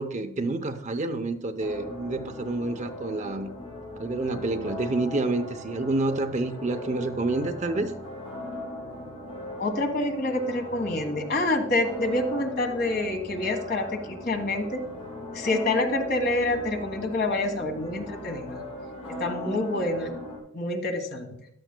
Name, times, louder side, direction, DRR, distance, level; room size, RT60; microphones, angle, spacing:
voice 1, 0.0-3.5 4.0-7.9 19.4-19.6, right 2 dB, 35° right, 7 dB, 0.7 m, -28 dB
sound 1, 1.6-20.4, left 1 dB, 30° left, 4.6 m, -39 dB
voice 2, 9.6-14.8 15.3-18.6 19.1-20.1 20.5-21.3, left 2 dB, 50° left, 5 dB, 1.5 m, -27 dB
14.0 x 11.0 x 2.2 m, 0.76 s
head